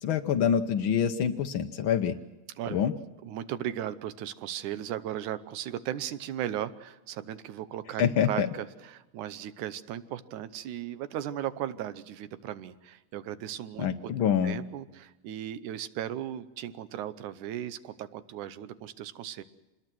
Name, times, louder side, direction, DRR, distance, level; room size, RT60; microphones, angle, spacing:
voice 1, 0.0-2.1 2.7-2.9 8.0-8.5 13.8-14.6, left 8 dB, 75° left, 5 dB, 1.1 m, -26 dB
voice 2, 3.2-19.4, right 11 dB, 80° right, 13 dB, 2.3 m, -37 dB
26.0 x 21.0 x 6.1 m, 1.1 s
omnidirectional pair, 3.5 m